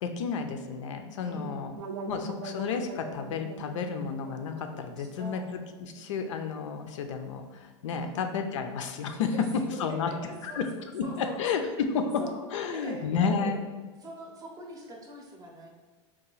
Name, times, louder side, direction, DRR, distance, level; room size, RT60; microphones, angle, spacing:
voice 1, 0.0-1.7 2.1-9.3 9.8-10.1 10.4-12.2 12.5-13.6, left 5 dB, 75° left, 6 dB, 0.4 m, -32 dB
voice 2, 1.2-1.7 5.0-5.5 7.9-8.1 9.2-11.4 12.2-12.4 12.7-13.6 14.0-15.7, right 1 dB, 25° right, 1 dB, 0.6 m, -43 dB
sound 1, 1.8-6.7, right 2 dB, 70° right, 0.4 m, -42 dB
2.8 x 2.4 x 3.8 m, 1.4 s
hypercardioid pair, 120°, 16 cm